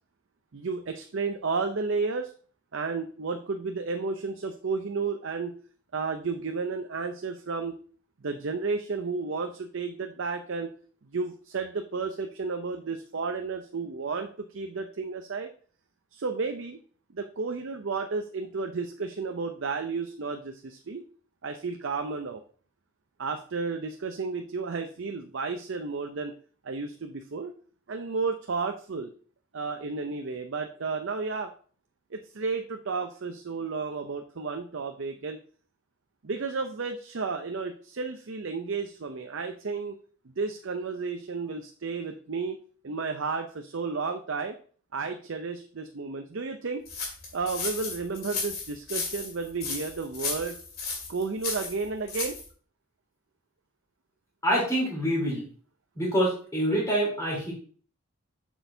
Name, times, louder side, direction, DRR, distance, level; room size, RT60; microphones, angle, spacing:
voice 1, 0.5-2.3 2.7-5.6 5.9-7.8 8.2-10.7 11.1-15.5 16.1-16.8 17.1-21.0 21.4-22.4 23.2-26.3 26.6-27.6 27.9-29.1 29.5-31.5 32.1-35.4 36.2-39.9 40.4-44.6 44.9-46.8 47.3-50.6 51.1-52.4, right 4 dB, 60° right, 6 dB, 0.6 m, -32 dB
sound 1, 46.9-52.5, left 4 dB, 45° left, 2.2 m, -34 dB
voice 2, 54.4-55.4 56.0-57.5, equal, 15° left, -3 dB, 3.5 m, -26 dB
7.9 x 6.2 x 2.7 m, 0.43 s
head